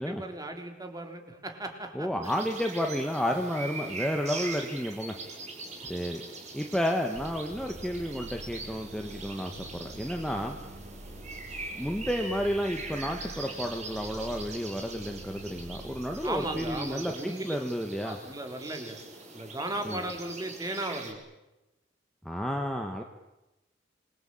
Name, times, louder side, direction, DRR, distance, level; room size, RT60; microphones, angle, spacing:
voice 1, 0.0-2.1 16.2-17.6 18.0-19.0 19.3-21.2, right 1 dB, 20° right, 5 dB, 4.0 m, -36 dB
voice 2, 1.9-5.1 5.9-6.2 6.5-10.6 11.7-18.2 19.8-20.0 22.2-23.0, equal, 5° left, 3 dB, 1.9 m, -31 dB
sound 1, 2.2-21.1, right 3 dB, 40° right, 5.8 m, -42 dB
sound 2, 7.1-16.8, right 1 dB, 75° right, 5.3 m, -46 dB
27.5 x 23.0 x 8.8 m, 0.98 s
head